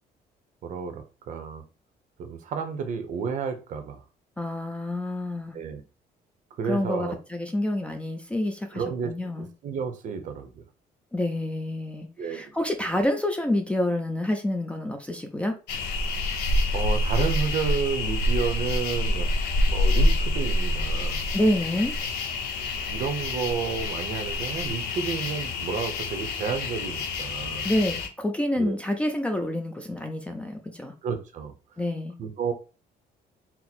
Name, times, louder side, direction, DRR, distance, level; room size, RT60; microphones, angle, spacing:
voice 1, 0.6-1.6 2.2-4.0 5.5-5.8 6.6-7.2 8.7-10.5 12.2-12.5 16.7-19.3 19.7-21.3 22.8-27.7 28.6-28.8 31.0-31.5 32.2-32.5, right 6 dB, 55° right, 0.7 m, -31 dB
voice 2, 4.4-5.5 6.6-9.5 11.1-15.6 21.3-22.0 27.6-30.9 31.8-32.1, left 1 dB, 5° left, 0.4 m, -28 dB
sound 1, 15.7-28.1, left 2 dB, 90° left, 0.8 m, -27 dB
4.3 x 2.0 x 4.1 m
cardioid pair, 165°, 16 cm